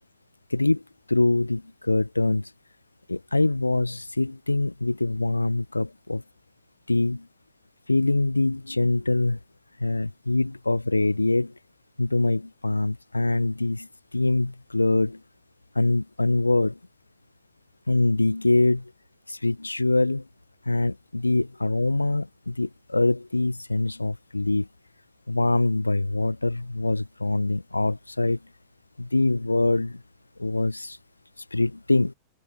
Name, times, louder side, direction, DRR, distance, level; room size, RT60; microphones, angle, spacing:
voice 1, 0.5-0.8 1.1-2.5 3.1-6.2 6.9-7.3 7.9-9.4 9.8-11.5 12.0-13.9 14.1-15.2 15.7-16.8 17.9-18.9 19.3-20.2 20.6-24.7 25.3-28.4 29.0-30.0 30.4-31.0 31.5-32.1, left 2 dB, 85° left, 6.7 m, -24 dB
figure-of-eight pair, 90°, 0 cm